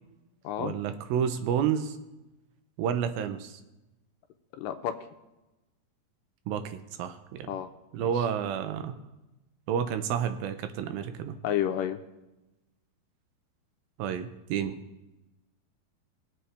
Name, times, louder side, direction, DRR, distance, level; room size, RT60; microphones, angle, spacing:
voice 1, 0.6-2.0 2.8-3.6 6.5-7.5 7.9-9.0 9.7-11.3 14.0-14.8, right 8 dB, 85° right, 9 dB, 2.6 m, -30 dB
voice 2, 4.5-4.9 7.5-7.7 8.0-8.2 11.4-12.0, left 10 dB, 80° left, 7 dB, 2.2 m, -30 dB
20.5 x 7.7 x 3.4 m, 1.0 s
omnidirectional pair, 4.1 m